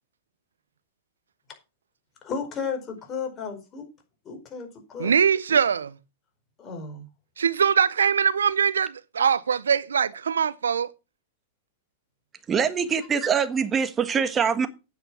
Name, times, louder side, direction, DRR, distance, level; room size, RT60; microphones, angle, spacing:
voice 1, 2.2-3.8 4.2-5.1 5.5-5.6 6.6-7.0, left 5 dB, 30° left, 4.7 m, -33 dB
voice 2, 5.0-5.9 7.4-10.9, right 7 dB, 85° right, 0.7 m, -22 dB
voice 3, 12.5-14.7, right 6 dB, 25° right, 1.4 m, -23 dB
9.4 x 7.8 x 6.0 m
hypercardioid pair, 110°, 0 cm